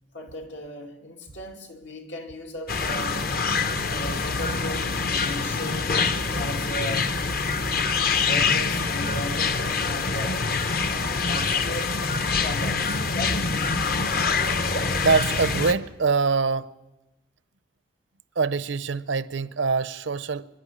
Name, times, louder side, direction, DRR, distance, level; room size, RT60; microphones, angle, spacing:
voice 1, 0.1-3.2 3.8-6.0 6.4-7.4 8.1-10.6 10.8-11.9 12.2-13.8, left 1 dB, 80° left, 2.7 m, -36 dB
sound 1, 2.7-15.7, left 4 dB, 50° left, 0.9 m, -25 dB
voice 2, 15.0-16.7 18.4-20.5, right 4 dB, 90° right, 0.7 m, -24 dB
24.5 x 12.0 x 9.7 m
head